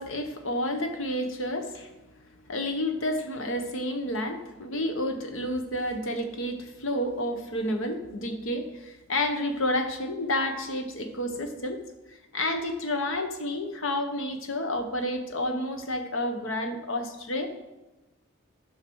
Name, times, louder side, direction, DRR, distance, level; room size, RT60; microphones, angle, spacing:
voice 1, 0.0-1.9 2.5-11.8 12.1-17.5, left 1 dB, 70° left, 6 dB, 1.1 m, -30 dB
12.0 x 5.7 x 4.7 m, 1.0 s
head